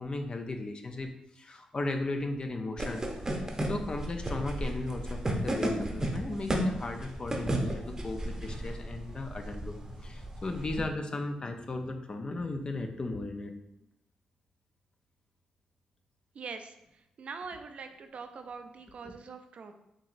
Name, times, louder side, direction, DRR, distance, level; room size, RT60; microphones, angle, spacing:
voice 1, 0.0-3.0 3.6-9.7 10.0-13.5 19.0-19.2, left 2 dB, 40° left, 5 dB, 0.5 m, -36 dB
sound 1, 2.8-10.8, right 1 dB, 25° right, 0.7 m, -34 dB
voice 2, 16.4-16.7 17.2-19.7, right 5 dB, 60° right, 7 dB, 0.4 m, -43 dB
4.6 x 2.9 x 2.6 m, 0.83 s
cardioid pair, 60°, 2 cm